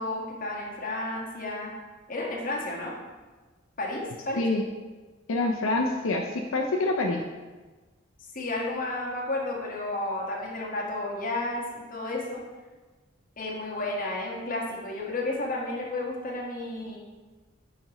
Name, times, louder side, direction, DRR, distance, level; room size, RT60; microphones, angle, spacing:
voice 1, 0.0-1.7 2.1-2.9 3.8-4.4 8.3-12.4 13.4-17.0, left 2 dB, 40° left, -3 dB, 1.5 m, -32 dB
voice 2, 5.3-7.2, left 2 dB, 80° left, 1 dB, 0.6 m, -26 dB
9.1 x 5.1 x 3.0 m, 1.3 s
head